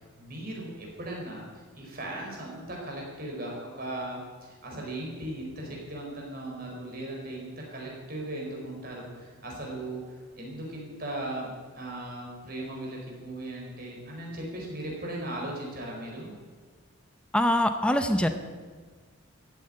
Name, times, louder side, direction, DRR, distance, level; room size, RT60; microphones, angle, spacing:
voice 1, 0.2-1.5 1.7-11.5 11.7-16.3, right 1 dB, 45° right, -2 dB, 4.8 m, -37 dB
voice 2, 17.3-18.3, left 1 dB, 5° left, 7 dB, 0.7 m, -23 dB
14.5 x 9.1 x 9.0 m, 1.5 s
head